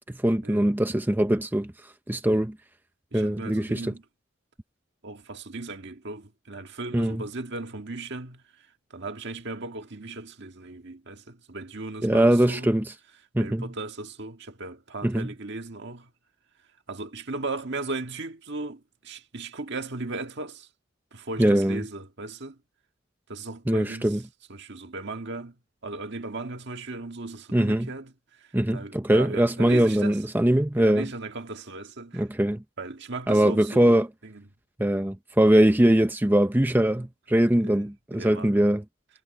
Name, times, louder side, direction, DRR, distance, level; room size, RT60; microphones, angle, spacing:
voice 1, 0.1-2.6 3.1-3.9 6.9-7.2 12.0-12.9 13.3-13.7 15.0-15.3 21.4-21.8 23.7-24.2 27.5-27.9 28.5-31.1 32.1-32.6 33.3-34.1 34.8-38.8, right 1 dB, 10° right, 0.6 m, -22 dB
voice 2, 3.1-4.0 5.0-8.4 8.9-12.7 13.4-16.1 16.9-20.7 21.1-22.6 23.3-24.2 24.5-25.6 25.8-30.2 30.8-32.2 32.8-34.4 37.6-37.8 38.1-38.7, right 3 dB, 60° right, 1.7 m, -37 dB
head